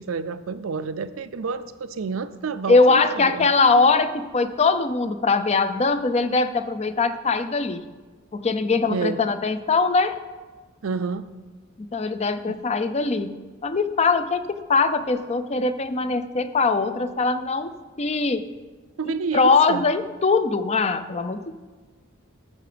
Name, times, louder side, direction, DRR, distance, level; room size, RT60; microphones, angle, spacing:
voice 1, 0.0-3.5 8.9-9.2 10.8-11.3 12.5-12.6 19.0-19.8, right 5 dB, 85° right, 13 dB, 0.5 m, -29 dB
voice 2, 2.7-7.9 8.3-10.1 11.9-13.3 13.6-17.7 18.0-18.4 19.0-21.5, left 4 dB, 30° left, 11 dB, 0.5 m, -21 dB
13.0 x 6.8 x 5.1 m, 1.3 s
head